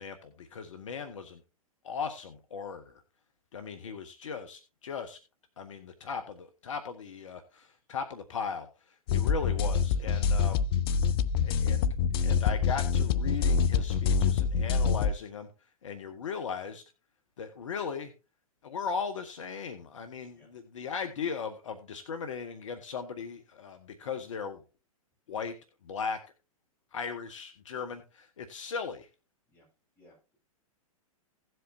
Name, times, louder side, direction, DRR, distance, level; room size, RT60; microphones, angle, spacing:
voice 1, 0.0-1.4 1.8-3.0 3.5-5.2 5.6-10.6 11.4-11.9 12.2-15.5 15.8-16.8 17.4-18.1 18.6-24.6 25.3-25.5 25.8-26.2 26.9-29.1, left 6 dB, 60° left, 8 dB, 1.2 m, -37 dB
sound 1, 9.1-15.1, left 6 dB, 40° left, 0.6 m, -26 dB
voice 2, 30.0-30.4, equal, 10° left, -3 dB, 7.2 m, -60 dB
16.5 x 7.8 x 2.6 m, 0.31 s
figure-of-eight pair, 105°, 19 cm